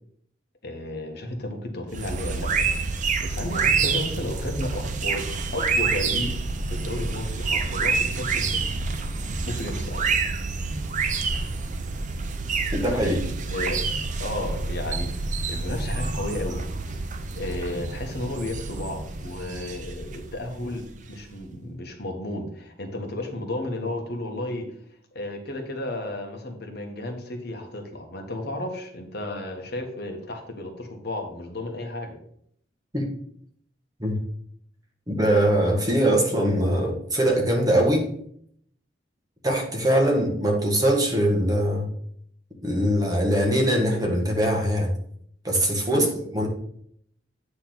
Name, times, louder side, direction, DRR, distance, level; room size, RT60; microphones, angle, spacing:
voice 1, 0.6-2.7 3.2-6.4 6.7-8.6 9.5-10.0 13.5-13.8 14.2-16.7 17.4-24.7 25.1-32.2 45.9-46.2, left 1 dB, 65° left, 3 dB, 1.4 m, -33 dB
sound 1, 1.9-21.3, right 4 dB, 45° right, 0.6 m, -28 dB
voice 2, 12.7-13.3 32.9-33.1 34.0-34.2 35.1-38.1 39.4-41.9 42.6-44.9 45.4-46.1 46.3-46.5, right 1 dB, 20° right, 0 dB, 1.6 m, -22 dB
8.7 x 3.4 x 6.0 m, 0.66 s
head